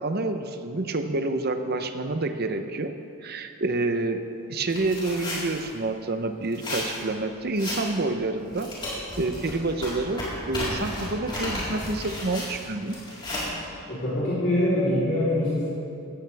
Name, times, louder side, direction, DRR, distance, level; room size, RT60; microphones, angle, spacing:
voice 1, 0.0-2.9 3.2-4.2 4.5-8.7 9.2-13.0, right 2 dB, 45° right, 7 dB, 0.8 m, -28 dB
sound 1, 4.7-5.6 6.4-7.0 7.6-8.0 8.5-13.4, left 1 dB, 20° left, 4.1 m, -33 dB
voice 2, 13.9-15.6, left 1 dB, 50° left, -11 dB, 3.8 m, -24 dB
17.0 x 15.0 x 3.5 m, 2.6 s
head